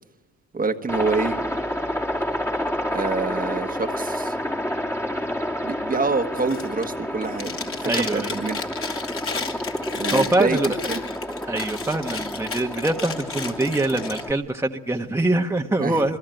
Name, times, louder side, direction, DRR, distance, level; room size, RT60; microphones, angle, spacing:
voice 1, 0.5-1.4 2.9-4.3 5.6-8.7 9.9-10.6 10.9-11.0 15.8-16.0, right 4 dB, 30° right, 6 dB, 1.5 m, -26 dB
Aircraft, 0.9-14.3, equal, 10° left, 1.9 m, -29 dB
Chewing mastication, 6.4-6.9 7.2-14.2, left 5 dB, 45° left, 3.1 m, -33 dB
voice 2, 7.8-8.4 10.1-10.7 11.5-16.2, right 2 dB, 10° right, 2 dB, 1.3 m, -24 dB
28.5 x 21.5 x 9.2 m, 1.1 s
cardioid pair, 90°, 30 cm